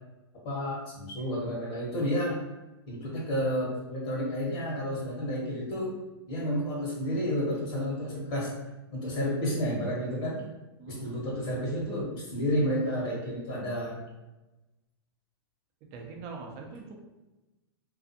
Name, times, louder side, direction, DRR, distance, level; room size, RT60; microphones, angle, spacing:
voice 1, 0.4-2.4 2.9-6.0 6.3-8.5 8.9-10.4 10.9-14.0, equal, 45° left, -4 dB, 0.9 m, -31 dB
voice 2, 10.8-11.2 15.9-16.9, right 4 dB, 45° right, 2 dB, 0.6 m, -42 dB
2.4 x 2.3 x 2.6 m, 1.1 s
hypercardioid pair, 120°, 13 cm